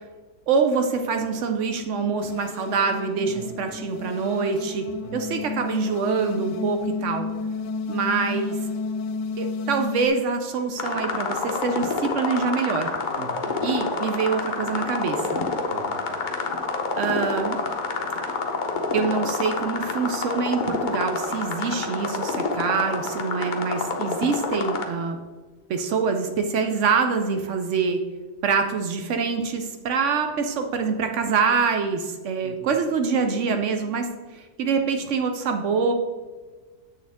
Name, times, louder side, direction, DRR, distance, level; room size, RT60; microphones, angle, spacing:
voice 1, 0.5-7.3 7.9-8.6 9.4-12.9 13.6-15.4 17.0-17.6 18.9-25.2 25.7-28.0 28.4-35.9, right 5 dB, 80° right, 6 dB, 0.6 m, -25 dB
sound 1, 1.9-10.1, left 4 dB, 75° left, 1.2 m, -32 dB
voice 2, 3.3-3.7 5.0-5.4 13.1-13.6 15.7-16.3 32.4-32.8, right 3 dB, 50° right, 3 dB, 1.0 m, -42 dB
sound 2, 10.8-24.9, left 3 dB, 55° left, 0.5 m, -28 dB
8.0 x 6.4 x 3.5 m, 1.4 s
omnidirectional pair, 2.0 m